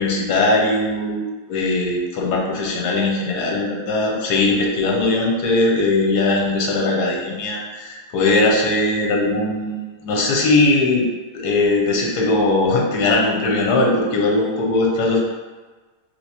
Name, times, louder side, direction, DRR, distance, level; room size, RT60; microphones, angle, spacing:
voice 1, 0.0-11.1 11.3-15.2, left 2 dB, 90° left, -1 dB, 1.2 m, -19 dB
3.4 x 2.9 x 2.7 m, 1.3 s
omnidirectional pair, 1.7 m